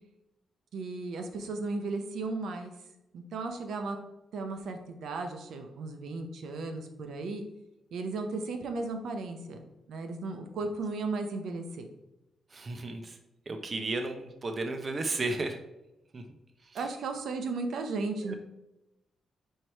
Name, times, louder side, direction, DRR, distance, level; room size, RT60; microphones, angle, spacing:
voice 1, 0.7-2.7 3.1-4.0 4.3-7.4 7.9-11.9 16.7-18.3, right 3 dB, 80° right, 5 dB, 0.7 m, -35 dB
voice 2, 12.5-13.2 13.5-15.6 16.1-16.2 16.6-16.9 18.2-18.3, right 2 dB, 35° right, 6 dB, 0.6 m, -34 dB
4.7 x 4.5 x 4.5 m, 0.93 s
cardioid pair, 105°, 0 cm